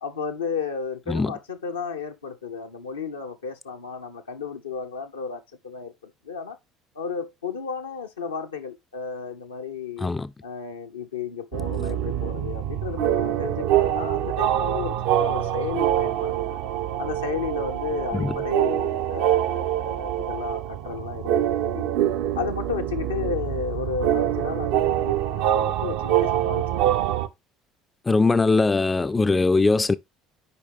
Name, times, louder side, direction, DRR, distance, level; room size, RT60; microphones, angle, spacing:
voice 1, 0.0-6.6 6.9-10.1 10.4-16.6 17.0-21.9 22.4-26.6, left 6 dB, 80° left, 0.7 m, -33 dB
voice 2, 10.0-10.3 18.1-18.4 28.1-30.0, left 3 dB, 20° left, 0.3 m, -21 dB
sound 1, 11.5-27.3, right 11 dB, 65° right, 0.5 m, -25 dB
6.7 x 5.0 x 3.4 m
figure-of-eight pair, 60°, 0 cm